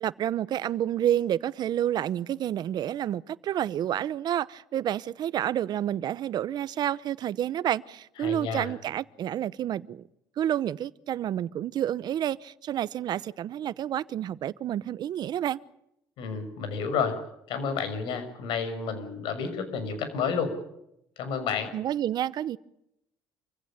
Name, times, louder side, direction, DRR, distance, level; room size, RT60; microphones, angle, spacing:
voice 1, 0.0-10.0 10.4-15.6 21.7-22.6, right 11 dB, 55° right, 0.9 m, -29 dB
voice 2, 8.2-8.7 16.2-17.2 17.5-20.5 21.2-21.7, left 6 dB, 80° left, 6.1 m, -30 dB
27.0 x 16.5 x 8.8 m
cardioid pair, 115°, 8 cm